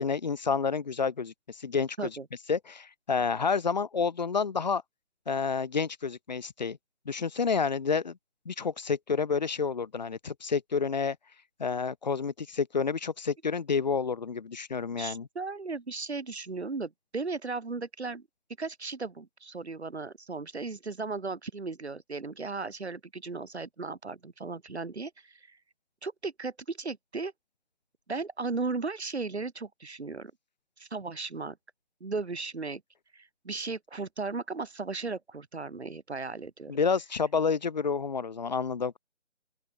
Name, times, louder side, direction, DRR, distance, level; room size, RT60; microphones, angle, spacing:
voice 1, 0.0-2.1 2.5-4.8 5.3-6.8 7.1-8.2 8.5-11.2 11.6-15.3 36.7-39.0, left 5 dB, 35° left, 5.7 m, -29 dB
voice 2, 15.0-18.3 18.6-25.6 26.0-27.3 28.1-30.3 30.8-31.6 32.0-32.8 33.1-36.7, right 3 dB, 65° right, 6.7 m, -36 dB
open air
figure-of-eight pair, 175°, 35 cm